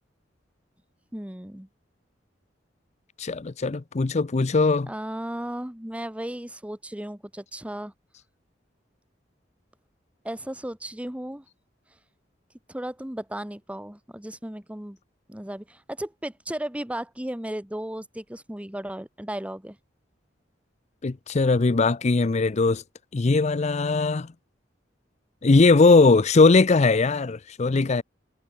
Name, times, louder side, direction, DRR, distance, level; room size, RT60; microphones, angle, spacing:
voice 1, 1.1-1.7 4.9-7.9 10.2-11.4 12.7-15.0 15.3-19.8, right 1 dB, 5° right, 1.0 m, -35 dB
voice 2, 3.2-4.9 21.0-22.8 23.1-24.3 25.4-28.0, left 3 dB, 40° left, 0.5 m, -20 dB
head